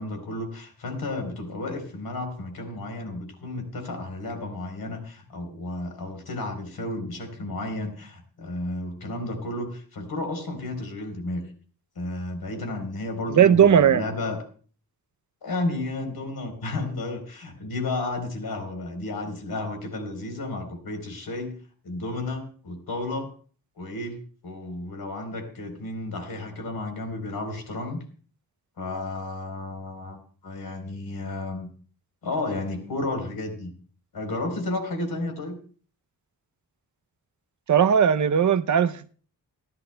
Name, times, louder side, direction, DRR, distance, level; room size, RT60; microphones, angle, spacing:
voice 1, 0.0-11.5 12.0-14.4 15.4-21.6 21.8-23.3 23.8-24.2 24.4-28.0 28.8-31.7 32.2-33.7 34.1-35.6, left 2 dB, 70° left, 4.0 m, -32 dB
voice 2, 13.3-14.0 37.7-39.1, right 8 dB, 50° right, 0.6 m, -18 dB
29.0 x 11.0 x 2.2 m
wide cardioid pair, 150°, 39 cm